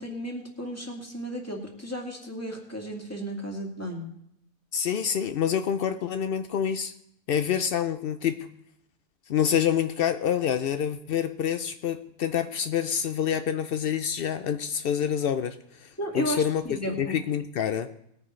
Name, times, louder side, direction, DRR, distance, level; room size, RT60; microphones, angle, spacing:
voice 1, 0.0-4.1 16.0-17.2, equal, 10° left, 0 dB, 1.9 m, -34 dB
voice 2, 4.7-6.9 7.3-8.5 9.3-17.9, left 8 dB, 75° left, 9 dB, 0.5 m, -27 dB
19.5 x 9.7 x 3.2 m, 0.74 s
omnidirectional pair, 1.6 m